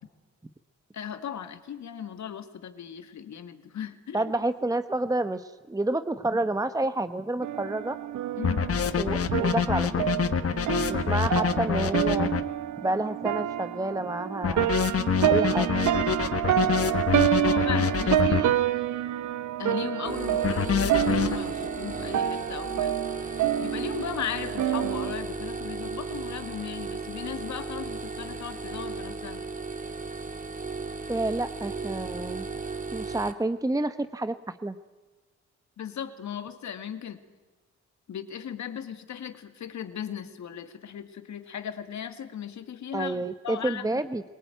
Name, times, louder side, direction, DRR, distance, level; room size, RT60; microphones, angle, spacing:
voice 1, 0.9-4.3 8.4-8.7 17.4-18.6 19.6-23.0 23.6-29.5 35.8-37.2 38.1-43.9, left 8 dB, 70° left, 9 dB, 2.1 m, -37 dB
voice 2, 4.1-8.0 9.0-10.1 10.9-12.3 12.8-14.7 15.2-15.8 31.1-32.5 32.9-34.8 42.9-44.2, right 2 dB, 10° right, 11 dB, 1.0 m, -29 dB
sound 1, 7.4-25.1, right 11 dB, 80° right, 1.1 m, -28 dB
sound 2, 8.4-12.4 14.4-18.4 20.4-21.4, left 7 dB, 50° left, 1.4 m, -26 dB
sound 3, 20.0-33.3, right 4 dB, 25° right, 2.2 m, -36 dB
24.0 x 18.5 x 9.2 m, 1.3 s
cardioid pair, 65°, 29 cm